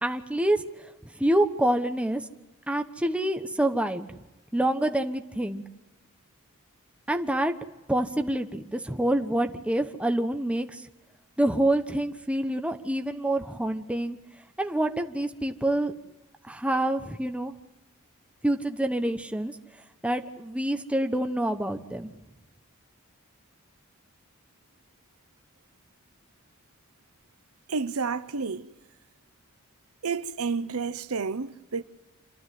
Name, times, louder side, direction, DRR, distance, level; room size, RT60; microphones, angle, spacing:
voice 1, 0.0-0.9 1.2-2.2 2.7-4.2 4.5-5.6 7.1-7.5 7.9-10.8 11.4-14.2 14.6-15.9 16.4-17.5 18.4-19.6 20.0-22.1, right 1 dB, 5° right, 1.1 m, -27 dB
voice 2, 27.7-28.7 30.0-31.8, right 5 dB, 80° right, 0.8 m, -30 dB
27.5 x 12.0 x 9.3 m
head